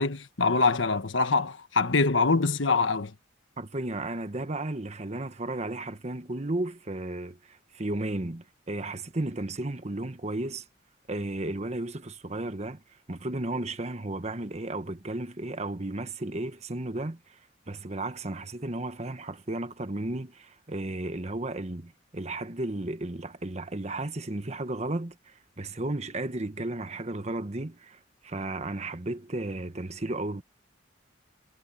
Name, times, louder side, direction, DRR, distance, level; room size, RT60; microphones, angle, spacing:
voice 1, 0.0-3.1, left 4 dB, 75° left, 1.3 m, -24 dB
voice 2, 3.6-10.6 11.1-12.8 13.1-17.4 17.7-30.4, right 2 dB, 35° right, 1.2 m, -34 dB
head